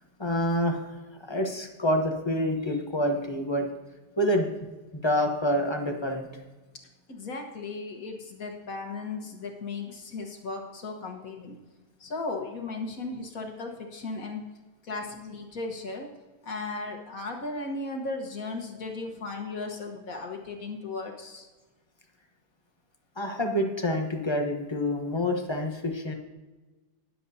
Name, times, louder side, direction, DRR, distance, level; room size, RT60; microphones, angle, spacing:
voice 1, 0.2-0.8 1.3-3.7 4.2-4.5 5.0-6.3 23.2-26.1, equal, 30° left, 3 dB, 0.5 m, -27 dB
voice 2, 7.1-11.6 12.0-14.4 14.8-16.1 16.4-21.5, left 3 dB, 50° left, 3 dB, 1.6 m, -36 dB
20.0 x 7.6 x 2.7 m, 1.2 s
omnidirectional pair, 2.0 m